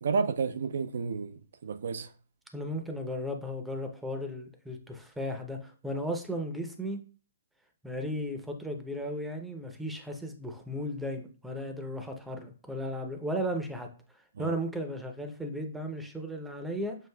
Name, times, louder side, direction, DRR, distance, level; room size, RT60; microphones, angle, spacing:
voice 1, 0.0-2.1 14.4-14.5, right 5 dB, 70° right, 0.4 m, -31 dB
voice 2, 2.5-7.0 7.8-13.9 14.4-17.0, equal, 5° right, 0.6 m, -35 dB
6.4 x 2.4 x 2.3 m
hypercardioid pair, 140°, 0 cm